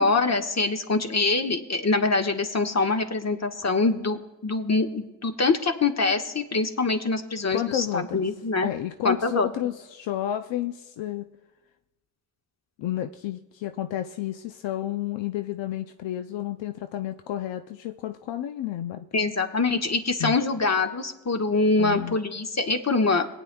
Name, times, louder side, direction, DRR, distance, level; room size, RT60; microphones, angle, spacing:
voice 1, 0.0-8.7 9.0-9.5 19.1-23.3, left 3 dB, 35° left, 4 dB, 1.5 m, -24 dB
voice 2, 7.5-8.2 8.6-11.3 12.8-19.1 20.2-20.4 21.8-22.2, left 12 dB, 75° left, 8 dB, 0.6 m, -31 dB
21.0 x 9.4 x 2.3 m, 1.1 s
supercardioid pair, 45°, 45 cm